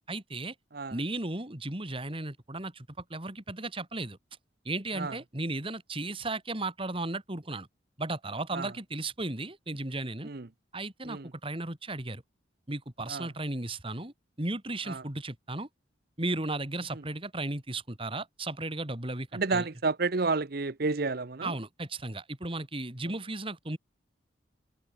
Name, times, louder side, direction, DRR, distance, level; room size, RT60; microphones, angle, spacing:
voice 1, 0.1-0.5 0.9-4.2 4.6-7.7 8.0-10.3 10.7-12.2 12.7-15.7 16.2-19.7 21.4-23.8, right 2 dB, 30° right, 2.6 m, -35 dB
voice 2, 19.3-21.5, right 3 dB, 50° right, 0.9 m, -31 dB
head